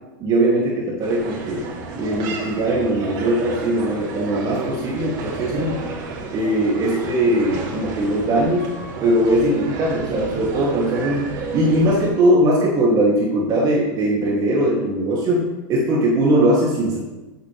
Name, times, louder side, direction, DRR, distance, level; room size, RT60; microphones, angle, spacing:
voice 1, 0.2-1.6 2.0-5.8 6.3-8.7 9.0-17.0, right 1 dB, 40° right, -4 dB, 2.8 m, -20 dB
sound 1, 1.0-12.1, right 3 dB, 60° right, 4.0 m, -32 dB
15.0 x 8.7 x 3.4 m, 1.1 s
supercardioid pair, 125°, 11 cm